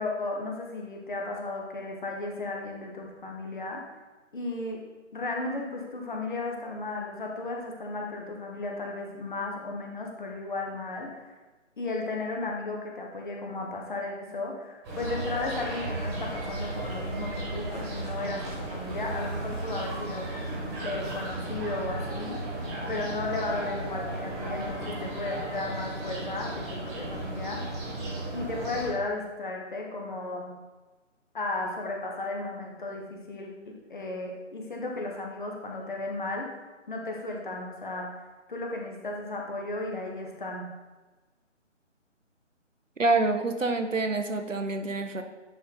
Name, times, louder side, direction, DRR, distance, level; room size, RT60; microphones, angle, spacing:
voice 1, 0.0-3.8 4.3-4.8 5.1-11.3 11.8-20.3 20.8-22.4 22.9-27.6 28.3-30.5 31.3-36.5 36.9-38.1 38.5-40.6, left 2 dB, 40° left, 0 dB, 1.4 m, -34 dB
sound 1, 14.8-28.9, right 1 dB, 15° right, 1.6 m, -35 dB
voice 2, 43.0-45.2, right 3 dB, 80° right, 6 dB, 1.0 m, -27 dB
10.0 x 4.3 x 3.9 m, 1.2 s
figure-of-eight pair, 150°, 38 cm